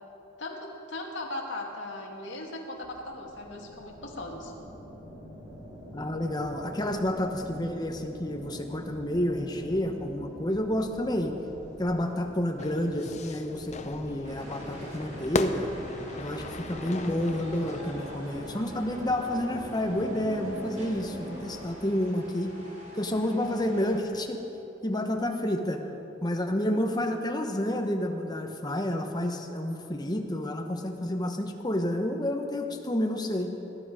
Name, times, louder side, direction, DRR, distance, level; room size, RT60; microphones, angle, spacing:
voice 1, 0.4-4.5, left 2 dB, 75° left, 0 dB, 2.1 m, -38 dB
sound 1, 2.8-21.7, equal, 20° right, 2.2 m, -44 dB
voice 2, 5.9-11.3 11.8-15.7 16.2-22.5 22.9-24.4 24.8-25.8 26.2-33.5, left 1 dB, 20° left, 4 dB, 1.1 m, -29 dB
Fire / Fireworks, 12.6-18.1, left 3 dB, 40° left, 0.6 m, -37 dB
sound 2, 14.2-24.0, equal, 40° right, 2.8 m, -47 dB
18.0 x 11.0 x 5.0 m, 2.9 s
head